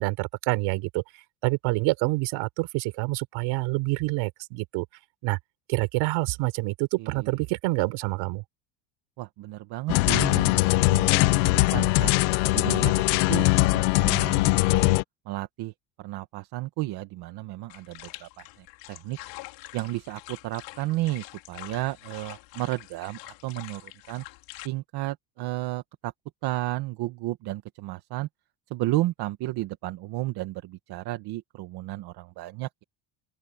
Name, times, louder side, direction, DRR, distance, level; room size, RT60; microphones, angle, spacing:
voice 1, 0.0-4.9 5.2-5.4 5.7-8.4, right 23 dB, 65° right, 4.8 m, -27 dB
voice 2, 7.0-7.4 9.2-12.1 12.5-13.0 13.3-14.9 15.3-15.7 16.0-19.2 19.7-24.2 24.6-26.1 26.4-28.3 28.7-32.8, right 17 dB, 50° right, 1.5 m, -33 dB
sound 1, 9.9-15.0, left 22 dB, 90° left, 1.2 m, -21 dB
sound 2, 17.7-24.7, left 20 dB, 65° left, 4.9 m, -45 dB
open air
cardioid pair, 145°, 49 cm